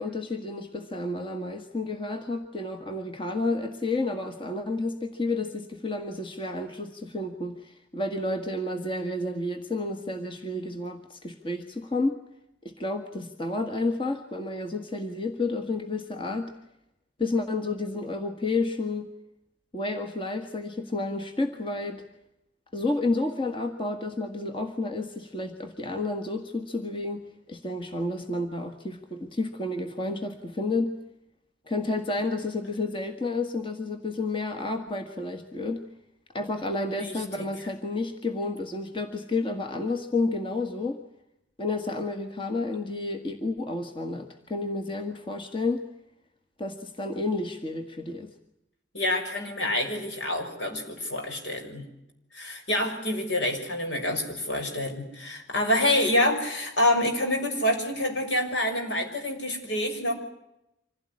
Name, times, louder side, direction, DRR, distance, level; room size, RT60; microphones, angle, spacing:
voice 1, 0.0-12.2 12.6-16.5 17.2-19.1 19.7-22.0 22.7-31.0 31.7-35.8 36.3-41.0 41.6-45.8 46.6-48.3, left 2 dB, 30° left, 5 dB, 1.7 m, -30 dB
voice 2, 37.0-37.4 48.9-51.8 52.3-60.1, left 1 dB, 70° left, 4 dB, 6.4 m, -27 dB
26.0 x 16.5 x 9.7 m, 0.85 s
head